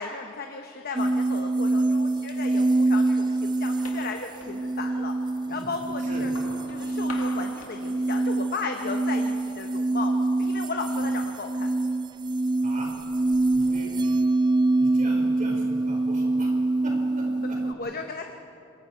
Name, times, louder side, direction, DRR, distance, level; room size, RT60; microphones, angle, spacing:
voice 1, 0.0-5.1 5.5-6.3 6.7-11.7 17.6-18.3, left 4 dB, 45° left, 4 dB, 1.0 m, -35 dB
sound 1, 1.0-17.7, right 2 dB, 20° right, 0.5 m, -25 dB
sound 2, 3.5-5.2 5.6-8.6 9.0-9.6 10.4-12.3 12.7-14.7, left 3 dB, 90° left, 2.4 m, -47 dB
voice 2, 13.5-14.2 14.8-16.5 16.8-17.6, right 1 dB, 40° right, -1 dB, 4.9 m, -40 dB
27.0 x 22.0 x 4.6 m, 2.8 s
head